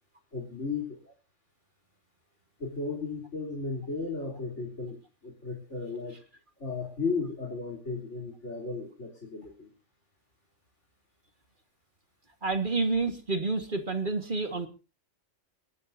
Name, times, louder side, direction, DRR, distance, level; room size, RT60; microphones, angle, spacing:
voice 1, 0.3-1.0 2.6-6.2 6.6-9.7, left 4 dB, 70° left, -2 dB, 3.9 m, -35 dB
voice 2, 12.4-14.7, right 3 dB, 45° right, 6 dB, 1.9 m, -29 dB
28.0 x 12.0 x 2.7 m, 0.33 s
omnidirectional pair, 1.2 m